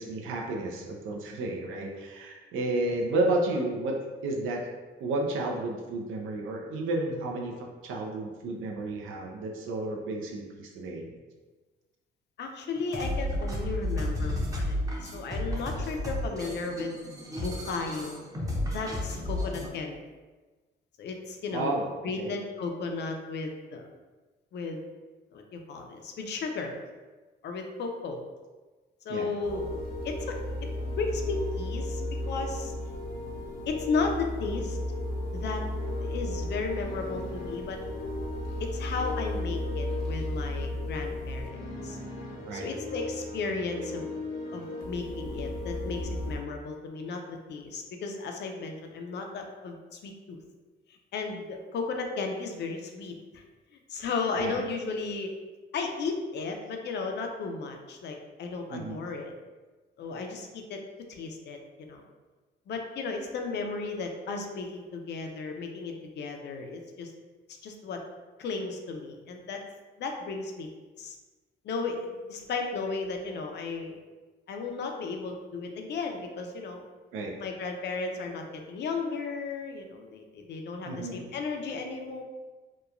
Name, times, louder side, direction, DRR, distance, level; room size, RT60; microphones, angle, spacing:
voice 1, 0.0-4.6 5.0-11.2 21.5-21.9 22.2-22.3 29.1-29.3 42.5-42.7 54.4-54.6 58.7-59.0 77.1-77.3 80.8-81.3, right 2 dB, 85° right, 0 dB, 0.5 m, -32 dB
voice 2, 12.4-16.9 17.4-18.2 18.7-19.9 21.0-23.9 24.5-24.8 25.3-26.8 27.4-28.2 29.1-32.7 33.7-34.8 35.3-35.6 36.0-37.8 38.6-42.0 42.5-44.1 44.5-50.4 50.9-53.4 53.9-55.3 55.7-59.3 60.0-60.8 61.1-62.0 62.7-67.1 67.6-68.0 68.4-69.6 70.0-70.7 71.0-71.2 71.6-74.0 74.5-76.8 77.4-82.2, left 4 dB, 60° left, 3 dB, 0.4 m, -34 dB
sound 1, 12.8-19.7, left 1 dB, 15° right, 0.6 m, -32 dB
sound 2, 29.4-46.4, left 1 dB, 85° left, 0.8 m, -34 dB
2.9 x 2.2 x 2.4 m, 1.3 s
cardioid pair, 90°, 20 cm